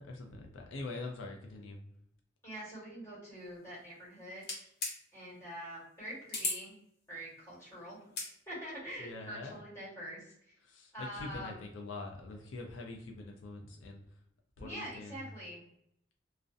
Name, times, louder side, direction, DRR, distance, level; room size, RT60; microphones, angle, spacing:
voice 1, 0.0-1.8 9.0-9.6 10.6-14.0 14.6-15.3, left 2 dB, 85° left, 2 dB, 0.4 m, -44 dB
voice 2, 2.4-4.4 5.1-6.8 7.1-8.1 8.5-10.6 10.9-11.6 14.6-15.6, equal, 15° left, -8 dB, 1.3 m, -45 dB
sound 1, 4.4-5.0 6.3-6.6 8.0-8.3, left 3 dB, 55° left, 0.9 m, -35 dB
2.5 x 2.0 x 2.4 m, 0.74 s
head